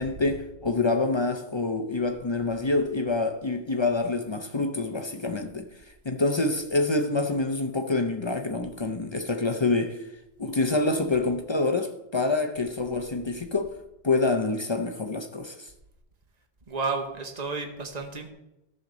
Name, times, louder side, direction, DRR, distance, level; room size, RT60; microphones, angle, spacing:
voice 1, 0.0-5.7 6.0-10.0 10.4-13.7 14.0-15.7, left 3 dB, 35° left, 0.5 m, -26 dB
voice 2, 16.7-18.3, right 4 dB, 40° right, 1.2 m, -31 dB
13.5 x 6.5 x 3.9 m
omnidirectional pair, 1.2 m